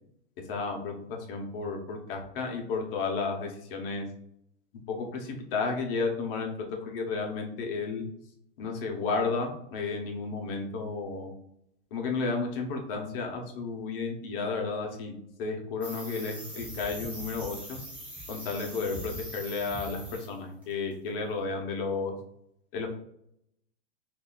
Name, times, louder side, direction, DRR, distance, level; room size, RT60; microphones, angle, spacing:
voice 1, 0.5-4.1 4.9-8.0 8.6-11.3 11.9-15.1 15.4-17.8 18.3-22.2 22.7-22.9, left 4 dB, 50° left, 2 dB, 0.9 m, -32 dB
sound 1, 15.8-20.3 20.6-20.9, equal, 5° right, 0.6 m, -42 dB
2.7 x 2.6 x 3.8 m, 0.74 s
supercardioid pair, 155°, 35 cm